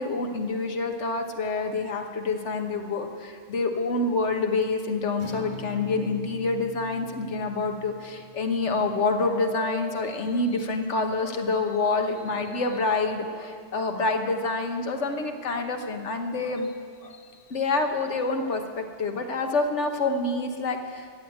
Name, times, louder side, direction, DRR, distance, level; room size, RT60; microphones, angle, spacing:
voice 1, 0.0-16.7 17.0-17.2 17.5-21.1, left 3 dB, 70° left, 5 dB, 1.4 m, -27 dB
Acoustic guitar, 5.2-9.4, right 1 dB, 85° right, 2.9 m, -43 dB
14.0 x 7.9 x 9.3 m, 2.1 s
omnidirectional pair, 1.3 m